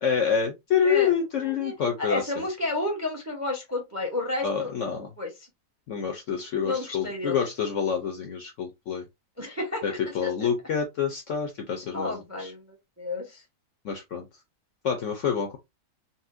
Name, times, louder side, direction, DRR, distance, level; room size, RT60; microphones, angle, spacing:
voice 1, 0.0-2.2 4.4-5.1 5.9-9.0 9.8-12.1 12.4-12.5 13.8-14.3 14.8-15.6, left 7 dB, 65° left, 0.8 m, -27 dB
voice 2, 1.4-1.7 2.0-4.7 5.2-5.3 6.6-7.4 9.4-10.5 11.9-13.4, left 2 dB, 15° right, 0.6 m, -31 dB
4.1 x 2.1 x 2.5 m
omnidirectional pair, 1.8 m